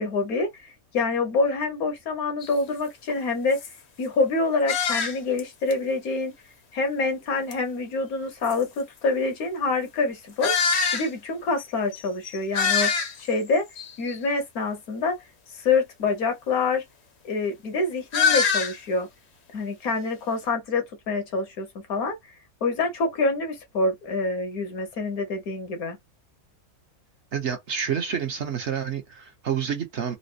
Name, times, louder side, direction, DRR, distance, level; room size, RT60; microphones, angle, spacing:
voice 1, 0.0-3.6 4.0-6.3 6.7-10.5 10.9-13.6 14.0-15.2 15.5-16.8 17.2-19.1 19.5-22.1 22.6-26.0, left 3 dB, 75° left, 1.5 m, -26 dB
sound 1, 2.4-2.5 3.1-3.2 3.5-3.7 4.7-5.4 5.7-5.8 7.5-7.6 8.4-8.5 10.4-11.1 11.6-11.7 11.9-12.0 12.2-13.3 13.8-14.2 18.1-18.8, left 6 dB, 55° left, 0.9 m, -24 dB
voice 2, 27.3-30.2, right 8 dB, 55° right, 1.0 m, -28 dB
4.1 x 2.0 x 2.5 m
omnidirectional pair, 1.5 m